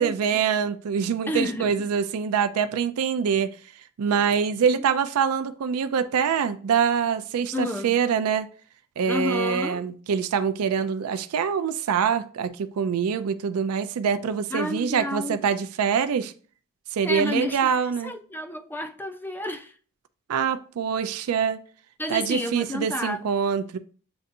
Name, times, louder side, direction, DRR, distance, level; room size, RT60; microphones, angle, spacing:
voice 1, 0.0-8.5 9.0-16.3 16.9-18.1 20.3-21.6 22.1-23.8, right 7 dB, 80° right, 0.4 m, -25 dB
voice 2, 1.3-1.9 4.1-4.3 4.7-4.9 7.5-7.9 9.1-9.8 14.5-15.4 17.0-17.7 18.0-19.7 22.0-23.3, left 2 dB, 10° left, 0.4 m, -30 dB
7.7 x 2.6 x 2.5 m
head